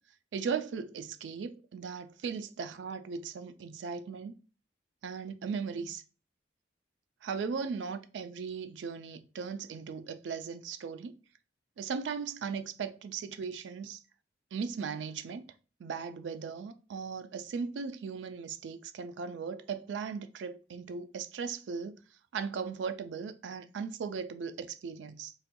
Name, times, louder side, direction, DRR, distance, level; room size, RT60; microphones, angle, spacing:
voice 1, 0.3-4.3 5.0-6.0 7.2-11.2 11.8-14.0 14.5-15.4 15.8-22.0 22.3-25.3, right 5 dB, 90° right, 0.4 m, -37 dB
4.1 x 2.5 x 2.2 m
head